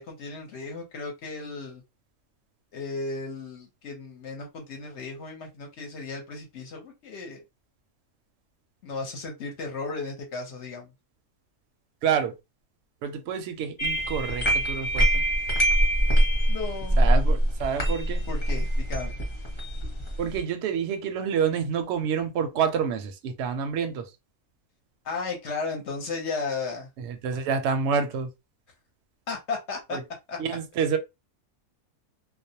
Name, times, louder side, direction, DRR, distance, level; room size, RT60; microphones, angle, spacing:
voice 1, 0.0-1.8 2.7-7.4 8.8-10.9 16.5-17.1 18.3-19.2 25.0-26.9 29.3-30.0 30.3-30.4, left 4 dB, 60° left, 0.9 m, -35 dB
voice 2, 12.0-12.4 13.0-15.1 17.0-18.2 20.2-24.1 27.0-28.3 29.9-30.0 30.4-31.0, right 7 dB, 65° right, 0.7 m, -28 dB
sound 1, 13.8-20.4, right 1 dB, 30° left, 0.7 m, -23 dB
2.4 x 2.0 x 2.6 m
omnidirectional pair, 1.4 m